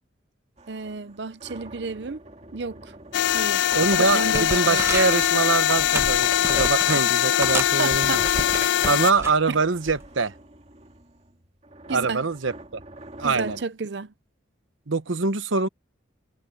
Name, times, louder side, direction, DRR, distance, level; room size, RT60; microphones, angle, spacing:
sound 1, 0.6-13.6, right 1 dB, 35° right, 2.4 m, -47 dB
voice 1, 0.7-2.2 2.5-2.9 3.3-3.7 4.0-4.9 7.8-8.4 8.7-8.9 9.5-9.6 11.9-12.3 13.2-14.1, right 4 dB, 60° right, 0.6 m, -31 dB
sound 2, 3.1-9.1, left 11 dB, 65° left, 0.3 m, -22 dB
sound 3, 3.3-3.4 3.7-5.3 5.7-7.0 7.4-9.4 9.9-10.1, right 2 dB, 15° right, 1.1 m, -32 dB
voice 2, 3.7-8.2 8.8-10.3 11.9-12.8 13.2-13.6 14.9-15.7, right 4 dB, 85° right, 1.1 m, -24 dB
head